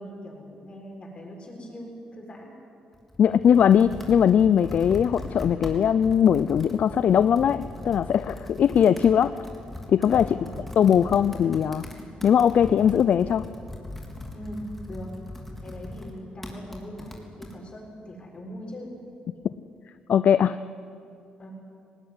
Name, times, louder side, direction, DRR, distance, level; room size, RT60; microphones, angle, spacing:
voice 1, 0.0-2.6 10.3-10.7 14.3-15.1 15.6-18.9 19.4-19.5 21.4-21.5, equal, 40° left, 0 dB, 7.0 m, -40 dB
Computer keyboard, 2.9-17.6, left 1 dB, 5° left, 3.7 m, -39 dB
voice 2, 3.2-9.3 9.9-10.4 10.8-11.8 12.2-13.4 20.1-20.6, left 8 dB, 60° left, 14 dB, 0.5 m, -20 dB
19.0 x 19.0 x 10.0 m, 2.4 s
cardioid pair, 80°, 3 cm